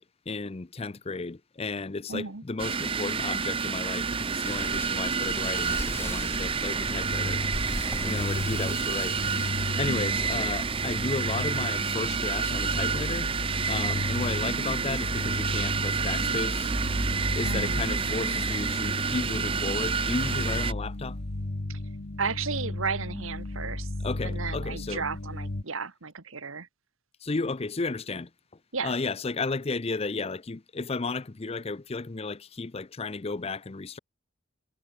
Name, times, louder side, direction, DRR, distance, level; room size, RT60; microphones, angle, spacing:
voice 1, 0.0-7.4 8.0-9.2 9.8-13.3 13.7-16.7 17.3-21.2 24.0-25.0 27.2-28.3 28.8-34.0, left 3 dB, 30° left, 0.5 m, -33 dB
voice 2, 2.1-2.4 8.1-8.2 9.9-10.2 17.4-17.9 21.7-21.8 22.2-23.9 24.2-26.7 28.7-29.0, right 5 dB, 70° right, 1.7 m, -34 dB
sound 1, 2.6-20.7, right 5 dB, 25° right, 0.5 m, -29 dB
sound 2, 4.4-11.1, left 1 dB, 10° left, 4.6 m, -39 dB
sound 3, 6.9-25.6, left 2 dB, 50° left, 1.2 m, -34 dB
head